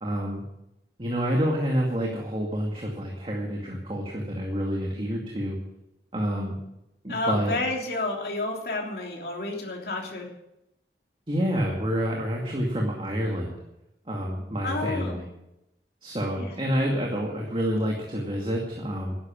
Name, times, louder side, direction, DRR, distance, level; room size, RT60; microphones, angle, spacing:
voice 1, 0.0-0.4 1.0-5.6 6.1-6.5 7.0-7.5 11.3-13.6 14.1-15.2 16.0-19.2, equal, 30° right, -1 dB, 2.3 m, -28 dB
voice 2, 7.1-10.3 14.6-15.2 16.4-16.6, left 2 dB, 60° left, 0 dB, 3.2 m, -30 dB
12.5 x 11.5 x 7.6 m, 0.88 s
head